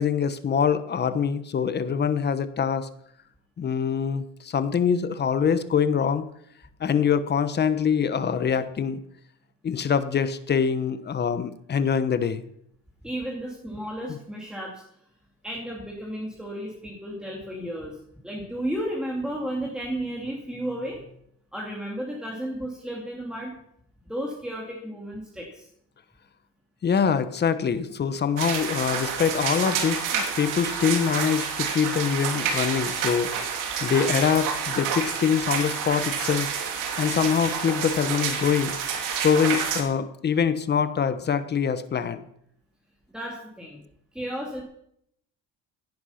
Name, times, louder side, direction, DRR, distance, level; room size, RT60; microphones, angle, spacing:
voice 1, 0.0-2.9 3.6-6.2 6.8-9.0 9.6-12.4 14.1-14.2 26.8-33.3 33.8-36.5 37.0-38.8 39.2-42.2, left 7 dB, 35° left, 12 dB, 1.1 m, -24 dB
voice 2, 13.0-14.8 15.4-21.0 21.5-23.5 24.0-25.7 43.1-43.8 44.1-44.6, right 1 dB, 5° right, -2 dB, 2.7 m, -33 dB
sound 1, 28.4-39.8, right 6 dB, 90° right, 2.9 m, -29 dB
17.0 x 10.0 x 5.8 m, 0.73 s
cardioid pair, 125°, 30 cm